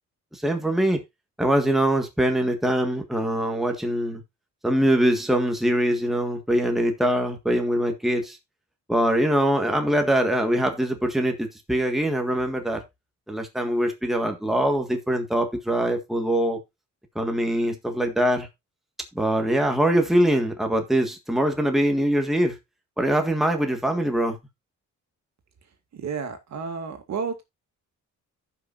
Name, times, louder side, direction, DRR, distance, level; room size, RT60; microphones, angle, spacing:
voice 1, 0.3-1.0 1.4-4.2 4.6-8.4 8.9-12.8 13.3-16.6 17.1-18.5 19.1-22.6 23.0-24.4, right 1 dB, ahead, 1.7 m, -23 dB
voice 2, 25.9-27.4, right 5 dB, 60° right, 2.3 m, -31 dB
15.0 x 5.9 x 2.6 m
cardioid pair, 115°, 31 cm